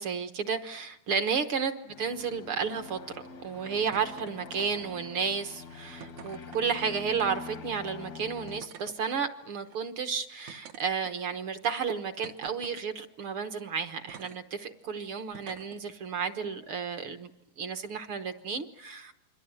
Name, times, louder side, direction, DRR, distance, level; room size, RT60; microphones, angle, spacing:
voice 1, 0.0-17.3 17.6-19.1, right 6 dB, 55° right, 1.7 m, -32 dB
sound 1, 1.9-8.6, left 5 dB, 55° left, 1.1 m, -45 dB
sound 2, 3.9-4.3 4.6-5.0 6.0-6.7 7.7-7.9 8.5-9.0 9.6-9.8 10.5-11.4 12.2-12.9 14.1-14.4 15.3-15.8 16.9-17.0, right 8 dB, 70° right, 2.6 m, -48 dB
28.0 x 22.5 x 9.0 m
omnidirectional pair, 3.4 m